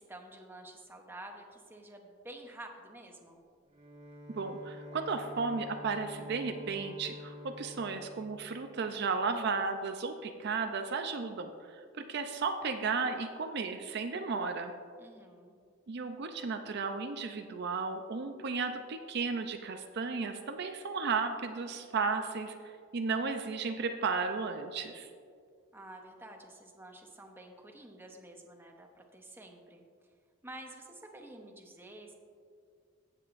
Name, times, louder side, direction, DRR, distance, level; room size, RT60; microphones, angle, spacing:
voice 1, 0.0-3.4 15.0-15.5 25.7-28.9 29.1-29.8 30.4-32.1, right 1 dB, 10° right, 2 dB, 0.8 m, -49 dB
Bowed string instrument, 3.7-9.3, left 1 dB, 30° right, 1.3 m, -49 dB
voice 2, 4.3-14.7 15.9-25.1, right 4 dB, 55° right, 6 dB, 0.5 m, -34 dB
15.5 x 7.6 x 2.5 m, 2.2 s
head